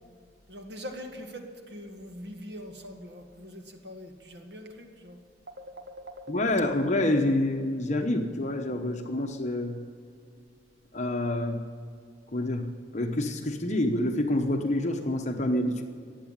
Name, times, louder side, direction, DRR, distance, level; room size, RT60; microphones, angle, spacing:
voice 1, 0.5-5.2 5.5-6.4, equal, 80° right, 4 dB, 1.9 m, -43 dB
voice 2, 6.3-9.8 10.9-11.6 12.3-15.8, left 1 dB, 40° left, 4 dB, 1.0 m, -27 dB
15.5 x 9.6 x 8.9 m, 2.3 s
head